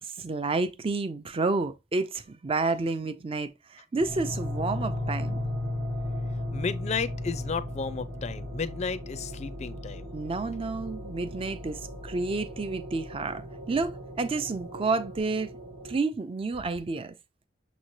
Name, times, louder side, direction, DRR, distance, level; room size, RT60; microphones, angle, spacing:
voice 1, 0.0-5.4 10.1-15.5 15.8-17.1, right 3 dB, 30° right, 0.5 m, -30 dB
sound 1, 4.0-16.0, left 1 dB, 65° right, 1.3 m, -36 dB
voice 2, 6.5-10.1, left 5 dB, 35° left, 0.4 m, -33 dB
6.4 x 3.1 x 2.6 m
head